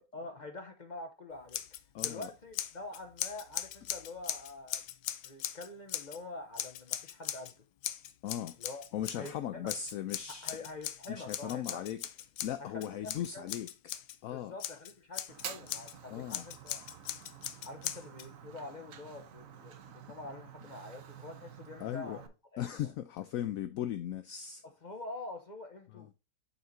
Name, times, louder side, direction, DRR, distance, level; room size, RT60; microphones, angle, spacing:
voice 1, 0.1-1.6 2.0-4.8 5.2-7.5 8.6-8.8 9.1-9.6 10.3-11.8 12.6-13.6 14.3-16.8 17.6-22.9 24.8-26.1, left 2 dB, 40° left, 0.7 m, -46 dB
Scissors, 1.5-2.3 2.5-6.2 6.6-7.5 7.8-9.3 9.7-14.2 14.6-15.9 16.3-18.3, left 11 dB, 85° left, 1.3 m, -39 dB
voice 2, 1.9-2.3 8.2-8.6 8.9-10.6 11.1-12.0 12.4-13.7 14.2-14.5 16.1-16.4 21.8-22.2 22.6-24.6 26.0-26.1, left 11 dB, 70° left, 0.9 m, -37 dB
Fire, 15.3-22.3, right 8 dB, 60° right, 1.2 m, -49 dB
7.3 x 5.7 x 2.6 m
omnidirectional pair, 1.7 m